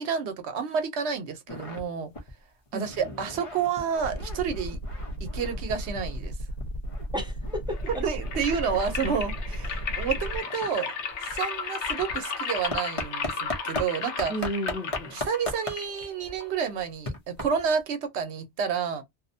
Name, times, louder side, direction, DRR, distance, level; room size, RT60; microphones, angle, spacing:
voice 1, 0.0-2.1 2.7-4.8 5.2-6.3 8.0-10.9 11.2-14.3 15.1-19.0, right 6 dB, 75° right, 0.9 m, -30 dB
sound 1, 1.5-1.8 2.1-2.3 2.7-6.3 6.6-13.9 14.2-17.8, left 2 dB, 35° left, 0.6 m, -38 dB
voice 2, 2.7-3.1 7.1-8.0 14.3-15.1, equal, 5° right, 0.6 m, -33 dB
sound 2, 4.0-10.4, right 2 dB, 55° left, 1.0 m, -35 dB
sound 3, 7.7-16.7, left 5 dB, 80° left, 0.9 m, -34 dB
2.6 x 2.1 x 2.5 m
omnidirectional pair, 1.2 m